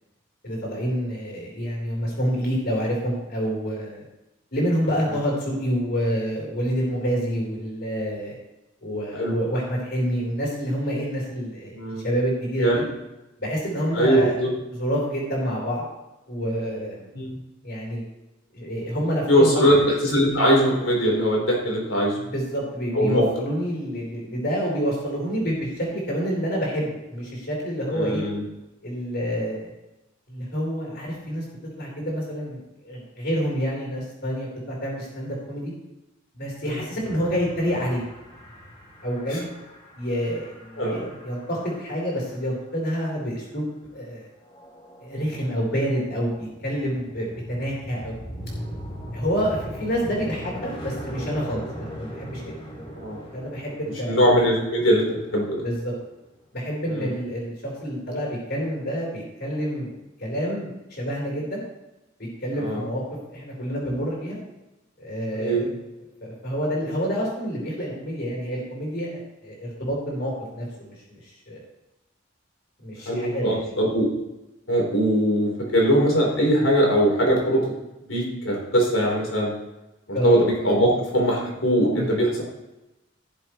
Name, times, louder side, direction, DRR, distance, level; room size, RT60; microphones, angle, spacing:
voice 1, 0.4-4.0 4.5-8.4 8.8-12.8 13.4-14.4 14.8-15.9 16.3-17.0 17.6-18.0 18.5-19.6 22.3-28.2 28.8-29.7 30.3-31.5 31.8-35.7 36.3-38.0 39.0-39.5 40.0-44.3 45.0-48.1 49.1-52.5 53.3-54.2 55.6-55.9 56.5-57.5 57.8-61.6 62.4-63.0 63.3-64.4 65.0-65.7 66.2-71.6 72.8-73.7 76.6-76.7 80.1-80.5 81.9-82.2, equal, 55° left, -5 dB, 4.0 m, -28 dB
voice 2, 11.7-12.0 12.6-12.8 13.9-14.5 17.1-17.4 19.3-22.2 22.9-23.2 27.9-28.4 36.7-36.8 39.3-39.4 40.8-41.1 52.9-53.2 54.1-55.6 56.9-57.2 62.6-62.8 65.3-65.7 73.1-74.1 74.7-77.6 78.1-79.5 80.1-82.4, equal, 85° left, -2 dB, 4.0 m, -21 dB
sound 1, 37.0-41.9 44.5-56.0, equal, 25° left, 2.7 m, -39 dB
17.0 x 7.2 x 3.2 m, 0.98 s
head